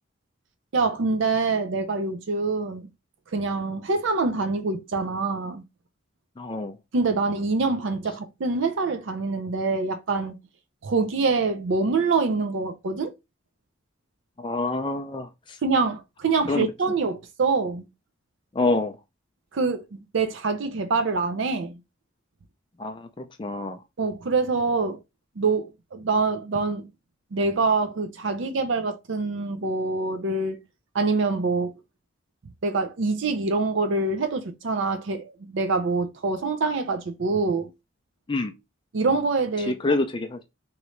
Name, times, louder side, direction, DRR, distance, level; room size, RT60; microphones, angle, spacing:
voice 1, 0.7-2.9 3.3-5.6 6.9-10.3 10.8-13.1 15.6-17.9 19.5-21.7 24.0-25.0 25.4-26.9 27.3-30.6 30.9-31.7 32.6-37.7 38.9-40.0, right 3 dB, 70° right, 0.5 m, -25 dB
voice 2, 6.4-6.8 14.4-15.6 16.5-16.7 18.5-19.0 22.8-23.8 38.3-38.5 39.7-40.4, left 2 dB, 25° left, 0.4 m, -27 dB
3.6 x 3.1 x 3.0 m
head